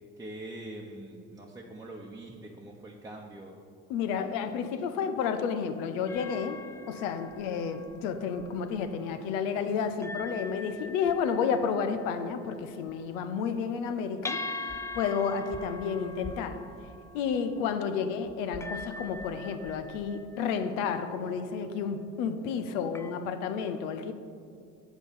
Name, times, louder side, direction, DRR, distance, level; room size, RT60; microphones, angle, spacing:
voice 1, 0.0-3.6, right 1 dB, 10° right, 0.9 m, -43 dB
voice 2, 3.9-6.6 6.9-14.7 14.9-16.6 17.1-24.1, left 6 dB, 80° left, 0.7 m, -31 dB
sound 1, 6.1-9.3 9.8-23.1, left 2 dB, 10° left, 0.4 m, -44 dB
8.1 x 4.0 x 6.9 m
hypercardioid pair, 65°, 38 cm